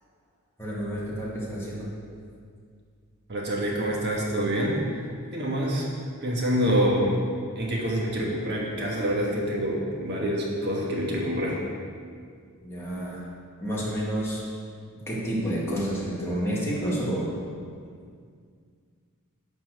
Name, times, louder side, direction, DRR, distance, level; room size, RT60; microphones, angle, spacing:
voice 1, 0.6-1.9 12.6-13.2 13.6-14.4 15.1-17.4, right 1 dB, 10° left, -7 dB, 2.1 m, -29 dB
voice 2, 3.3-5.1 5.3-5.9 6.2-7.2 7.5-11.6, equal, 50° right, -3 dB, 1.4 m, -26 dB
11.0 x 4.4 x 6.5 m, 2.1 s
head